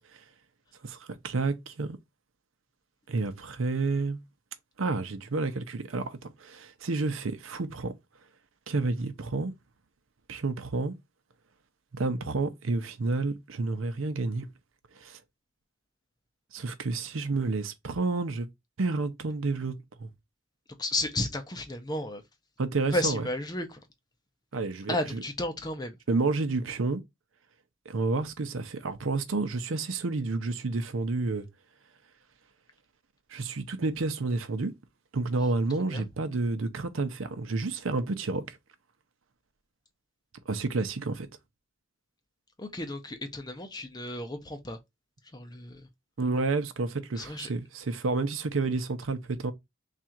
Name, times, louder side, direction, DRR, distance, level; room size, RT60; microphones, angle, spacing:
voice 1, 0.8-2.0 3.1-4.2 4.8-7.9 8.7-9.5 10.3-10.9 11.9-14.5 15.0-15.2 16.5-18.5 18.8-20.1 22.6-23.3 24.5-25.2 26.1-27.0 27.9-31.5 33.3-34.7 35.1-38.6 40.5-41.3 46.2-49.5, right 3 dB, 80° right, 0.7 m, -30 dB
voice 2, 20.8-22.2 22.9-23.8 24.9-26.0 35.9-36.0 42.6-44.8 45.3-45.9 47.2-47.5, left 1 dB, 20° left, 0.6 m, -33 dB
3.6 x 2.5 x 4.3 m
head